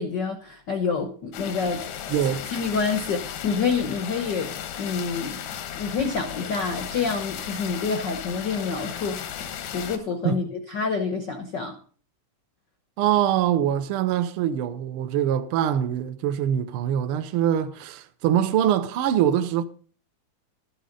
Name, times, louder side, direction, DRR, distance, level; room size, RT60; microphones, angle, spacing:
voice 1, 0.0-1.8 2.5-4.5 4.8-5.4 5.7-9.3 9.7-11.8, left 5 dB, 75° left, 1.0 m, -27 dB
sound 1, 1.3-10.0, left 9 dB, 90° left, 2.6 m, -35 dB
voice 2, 2.1-2.4 10.2-10.4 13.0-19.6, right 10 dB, 80° right, 1.2 m, -23 dB
12.5 x 10.0 x 3.9 m
omnidirectional pair, 3.5 m